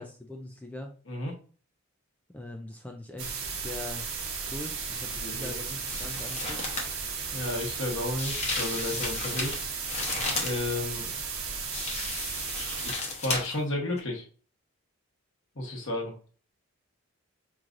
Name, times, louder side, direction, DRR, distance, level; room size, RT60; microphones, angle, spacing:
voice 1, 0.0-0.9 2.3-4.1 4.5-6.7, left 2 dB, 5° left, 2 dB, 0.3 m, -42 dB
voice 2, 1.1-1.4 5.2-5.6 7.3-9.7 10.3-11.1 12.8-14.2 15.5-16.1, left 2 dB, 60° left, 0 dB, 1.2 m, -32 dB
sound 1, 3.2-12.9, right 5 dB, 70° right, 1.0 m, -35 dB
sound 2, 5.4-5.6 5.9-6.9 8.2-10.6 11.7-13.6 14.0-14.1, left 3 dB, 30° left, 0.8 m, -34 dB
4.9 x 3.1 x 2.5 m, 0.40 s
head